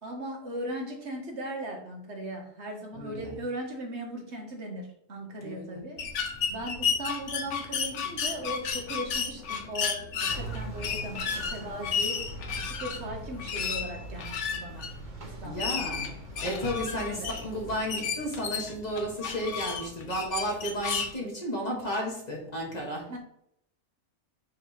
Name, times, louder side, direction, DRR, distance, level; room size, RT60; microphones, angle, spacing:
voice 1, 0.0-6.1 6.5-12.2 12.5-14.9 15.2-16.4 16.8-17.3 23.1-23.2, right 1 dB, 55° right, 1 dB, 1.4 m, -38 dB
voice 2, 2.9-3.4 5.4-5.8 15.4-16.1 16.4-23.2, equal, 30° left, -2 dB, 1.6 m, -33 dB
sound 1, 6.0-21.1, left 6 dB, 65° left, 1.1 m, -33 dB
sound 2, 10.3-17.8, right 1 dB, 40° right, 1.1 m, -42 dB
6.3 x 3.5 x 5.0 m, 0.74 s
omnidirectional pair, 1.4 m